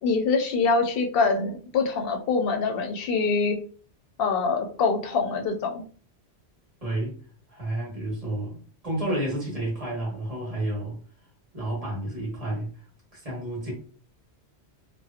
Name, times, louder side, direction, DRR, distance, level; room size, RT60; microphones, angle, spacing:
voice 1, 0.0-3.6 4.2-5.8, left 4 dB, 65° left, 4 dB, 0.7 m, -24 dB
voice 2, 6.8-7.1 7.5-11.0 11.5-12.8 13.1-13.7, right 1 dB, 40° right, -5 dB, 1.0 m, -31 dB
2.7 x 2.1 x 2.4 m, 0.43 s
omnidirectional pair, 1.1 m